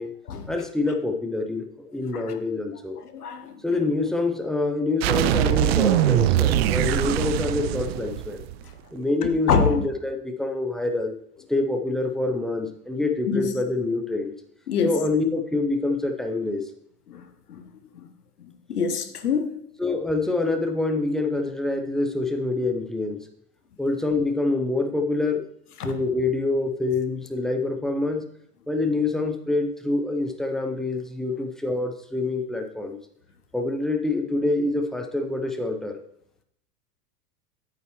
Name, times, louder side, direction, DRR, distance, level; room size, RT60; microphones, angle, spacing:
voice 1, 0.5-3.0 3.6-8.4 8.9-11.1 11.5-14.3 14.8-16.7 19.8-23.3 23.8-25.5 25.8-28.2 28.7-33.0 33.5-36.0, left 2 dB, ahead, 0.6 m, -26 dB
voice 2, 3.0-3.6 6.5-6.6 9.5-9.9 13.3-13.5 14.7-15.0 17.1-17.8 18.4-19.7 25.8-26.0, left 5 dB, 75° left, 1.1 m, -26 dB
sound 1, 5.0-8.7, right 12 dB, 45° right, 0.5 m, -22 dB
9.0 x 8.0 x 3.0 m
figure-of-eight pair, 85°, 46 cm